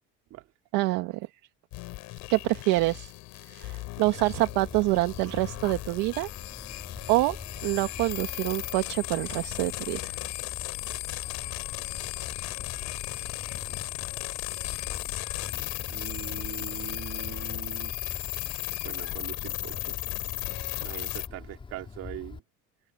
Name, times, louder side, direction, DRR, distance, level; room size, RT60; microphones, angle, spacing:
voice 1, 0.7-1.2 2.3-3.1 3.5-6.3 7.1-7.4 7.6-10.1, right 20 dB, 70° right, 2.0 m, -26 dB
sound 1, 1.7-21.3, left 21 dB, 65° left, 6.1 m, -36 dB
Wind, 4.0-22.4, left 4 dB, 15° left, 4.2 m, -44 dB
voice 2, 15.9-18.4 18.8-20.0 20.8-22.4, right 15 dB, 55° right, 4.5 m, -42 dB
open air
cardioid pair, 150°, 31 cm